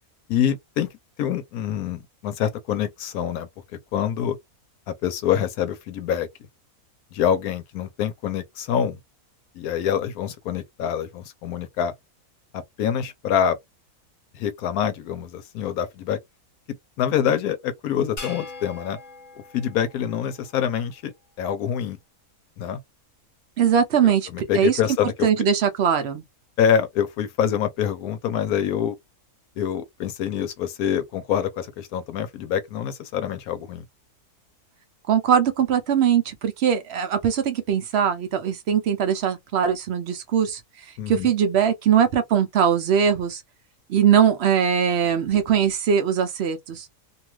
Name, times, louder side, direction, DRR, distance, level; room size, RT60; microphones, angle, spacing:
voice 1, 0.3-0.9 1.2-3.5 3.9-4.4 4.9-6.3 7.1-9.0 9.6-11.9 12.5-13.6 14.3-16.2 17.0-19.0 19.5-21.1 21.4-22.0 22.6-22.8 24.0-25.3 26.6-28.9 29.6-33.8 41.0-41.3, left 9 dB, 80° left, 1.1 m, -25 dB
sound 1, 18.2-20.7, left 3 dB, 40° left, 1.0 m, -41 dB
voice 2, 23.6-24.3 24.5-26.2 35.1-40.6 41.1-43.4 43.9-46.9, right 8 dB, 65° right, 0.6 m, -21 dB
2.7 x 2.3 x 3.0 m
omnidirectional pair, 1.6 m